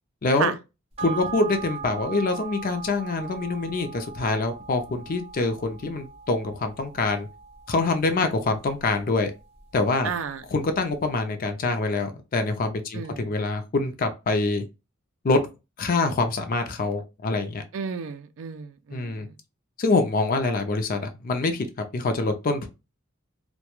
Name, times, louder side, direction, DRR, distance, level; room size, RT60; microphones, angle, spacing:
voice 1, 0.2-0.5 1.0-7.3 7.7-9.3 9.7-10.1 10.5-14.6 15.2-15.4 15.8-17.6 18.9-19.3 19.8-21.7 21.9-22.7, left 3 dB, 45° left, 0.4 m, -25 dB
sound 1, 1.0-9.7 10.1-10.2, right 6 dB, 30° right, 0.7 m, -40 dB
voice 2, 10.0-10.4 12.9-13.3 17.7-19.4, right 6 dB, 70° right, 0.4 m, -32 dB
2.3 x 2.1 x 2.9 m
head